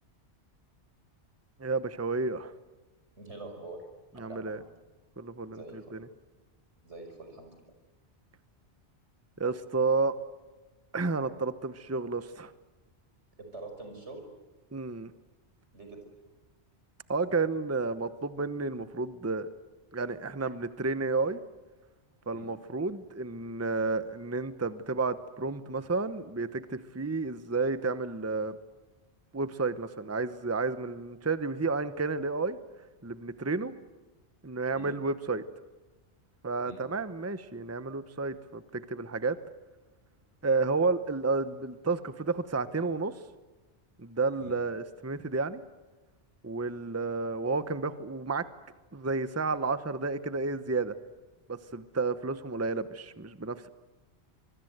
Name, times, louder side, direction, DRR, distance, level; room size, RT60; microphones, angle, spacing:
voice 1, 1.6-2.5 4.2-4.6 5.2-6.1 9.4-10.2 10.9-12.5 14.7-15.1 17.1-19.5 19.9-21.4 22.3-28.6 29.3-32.6 33.0-33.7 34.4-35.4 36.4-39.4 40.4-43.1 44.0-45.6 46.4-48.5 48.9-50.9 51.5-53.7, right 3 dB, 15° right, 12 dB, 0.9 m, -31 dB
voice 2, 3.2-3.8 4.1-4.6 5.5-6.0 6.8-7.6 13.5-14.2 15.7-16.0 22.3-22.5 34.7-34.9 36.6-36.8 44.4-44.6, right 2 dB, 90° right, 5 dB, 5.8 m, -45 dB
24.5 x 23.5 x 8.0 m, 1.2 s
omnidirectional pair, 1.1 m